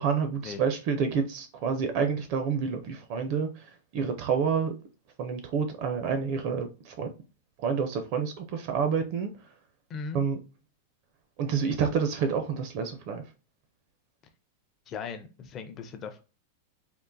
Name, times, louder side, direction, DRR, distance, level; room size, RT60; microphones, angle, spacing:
voice 1, 0.0-4.7 5.2-7.1 7.6-9.3 10.1-10.4 11.4-13.2, right 6 dB, 40° right, 0.4 m, -28 dB
voice 2, 9.9-10.2 14.9-16.2, left 5 dB, 20° left, 0.4 m, -38 dB
3.6 x 2.4 x 2.6 m
supercardioid pair, 170°, 0 cm